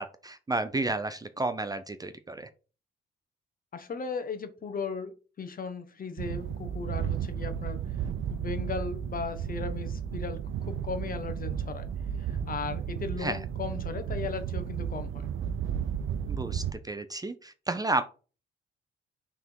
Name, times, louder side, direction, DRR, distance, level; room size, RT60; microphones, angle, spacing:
voice 1, 0.0-2.5 13.2-13.4 16.3-18.0, right 2 dB, 20° right, 10 dB, 0.5 m, -32 dB
voice 2, 3.7-7.8 8.3-11.9 12.3-15.3, left 5 dB, 45° left, 9 dB, 1.1 m, -37 dB
sound 1, 6.2-16.7, right 8 dB, 80° right, 0.6 m, -33 dB
5.9 x 3.6 x 4.5 m, 0.35 s
cardioid pair, 110°, 21 cm